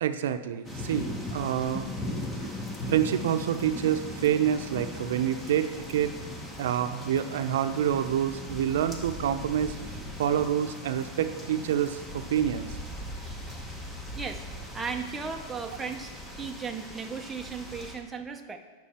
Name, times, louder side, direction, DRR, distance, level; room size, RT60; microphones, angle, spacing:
voice 1, 0.0-1.9 2.9-6.1 6.6-9.8 10.2-12.8, right 10 dB, 85° right, 9 dB, 0.5 m, -27 dB
sound 1, 0.6-17.9, left 1 dB, 10° left, 0.9 m, -39 dB
voice 2, 14.1-16.1 16.4-18.6, right 5 dB, 10° right, 3 dB, 0.5 m, -36 dB
9.1 x 6.0 x 4.2 m, 1.3 s
supercardioid pair, 160°, 0 cm